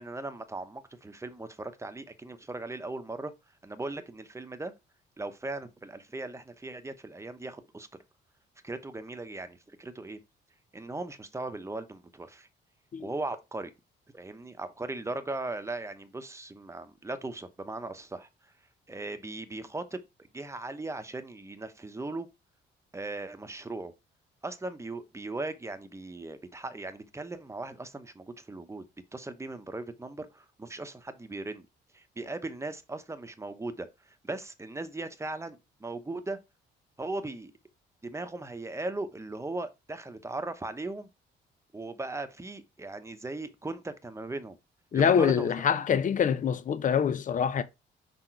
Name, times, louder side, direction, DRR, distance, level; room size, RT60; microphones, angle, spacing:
voice 1, 0.0-3.3 3.6-4.7 5.2-7.9 8.6-10.2 10.7-12.5 13.0-13.7 14.1-18.5 18.9-20.0 20.3-22.3 22.9-23.9 24.4-28.8 29.1-31.7 31.9-33.9 34.2-36.4 37.0-37.5 38.0-41.1 41.7-44.6 44.9-45.8, right 2 dB, 15° right, 1.0 m, -38 dB
voice 2, 44.9-47.6, left 7 dB, 40° left, 0.6 m, -25 dB
6.0 x 3.8 x 4.6 m
cardioid pair, 90°, 20 cm